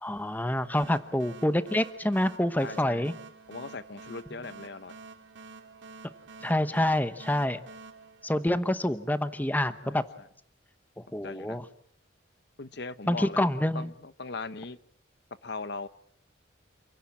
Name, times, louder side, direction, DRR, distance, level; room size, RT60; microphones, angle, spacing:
voice 1, 0.0-3.1 6.4-7.6 8.2-10.0 11.1-11.6 13.1-13.9, left 1 dB, 10° left, 12 dB, 0.9 m, -27 dB
sound 1, 0.7-9.1, right 4 dB, 70° right, 2.2 m, -49 dB
voice 2, 2.6-3.1 3.5-4.9 9.8-10.3 11.2-11.6 12.6-14.8 15.4-15.9, left 3 dB, 55° left, 14 dB, 1.0 m, -39 dB
28.5 x 17.0 x 8.6 m, 0.68 s
head